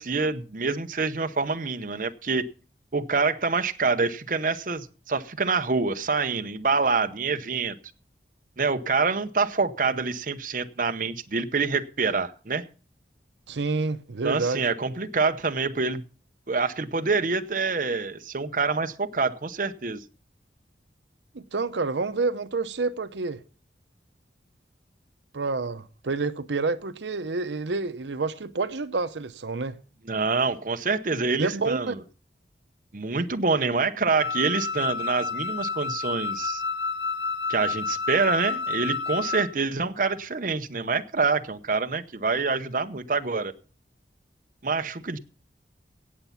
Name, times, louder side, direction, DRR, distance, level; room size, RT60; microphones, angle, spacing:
voice 1, 0.0-2.5 2.9-7.8 8.6-12.6 14.2-16.0 16.5-20.0 30.1-32.0 32.9-36.6 37.5-43.5 44.6-45.2, right 4 dB, 45° right, 0.8 m, -26 dB
voice 2, 13.5-14.6 21.3-23.4 25.3-29.8 31.4-31.9, right 3 dB, 80° right, 0.7 m, -28 dB
Wind instrument woodwind instrument, 34.2-39.5, left 5 dB, 75° left, 1.1 m, -30 dB
17.5 x 7.1 x 5.7 m
head